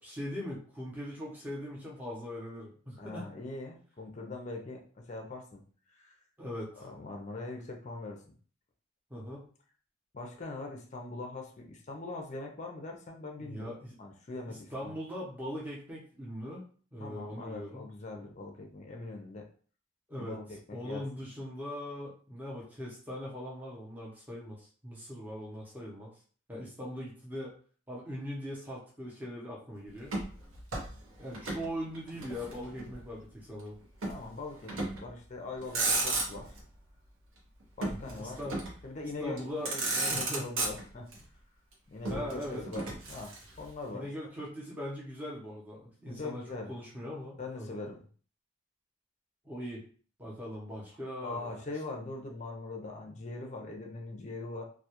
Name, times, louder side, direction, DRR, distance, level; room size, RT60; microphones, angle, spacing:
voice 1, 0.0-3.3 6.4-6.8 9.1-9.5 13.4-14.0 14.5-16.7 16.9-17.9 20.1-20.4 20.7-26.1 26.5-27.5 27.9-30.2 31.2-33.8 38.0-38.5 39.2-39.7 40.1-40.5 42.1-42.6 43.9-46.4 46.7-47.7 49.4-49.8 50.2-51.6, equal, 10° right, -5 dB, 0.6 m, -40 dB
voice 2, 3.0-5.6 5.9-6.1 6.8-8.2 10.1-13.7 14.0-14.9 17.0-19.5 20.2-21.0 34.1-36.5 37.8-38.4 38.8-41.1 41.9-44.1 46.1-46.7 47.4-48.0 51.2-54.6, left 3 dB, 35° left, 2 dB, 0.4 m, -42 dB
Motor vehicle (road), 30.0-31.7 31.9-33.0 34.0-34.2 34.7-35.1 35.5-36.6 37.8-38.9 39.4-39.5 39.6-41.2 42.0-43.7, right 2 dB, 80° right, 0.7 m, -34 dB
2.2 x 2.1 x 2.8 m, 0.43 s
head